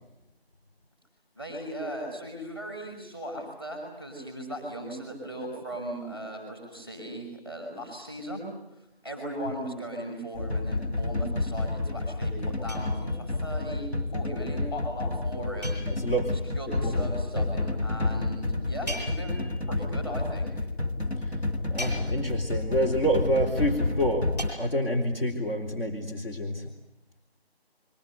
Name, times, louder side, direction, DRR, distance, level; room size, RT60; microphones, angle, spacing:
voice 1, 1.4-8.4 9.0-15.7 16.6-19.4 19.7-20.5, right 1 dB, 20° left, 3 dB, 7.1 m, -37 dB
sound 1, 10.3-24.5, left 2 dB, 90° left, 2.3 m, -30 dB
sound 2, 12.7-13.4 15.6-16.4 18.9-19.8 21.8-22.6 24.4-24.5, equal, 40° left, 7.3 m, -40 dB
voice 2, 15.9-16.4 16.8-17.1 17.3-17.5 21.3-21.4 21.7-26.7, equal, 60° left, 1 dB, 4.1 m, -28 dB
28.0 x 23.5 x 8.0 m, 0.88 s
figure-of-eight pair, 180°, 32 cm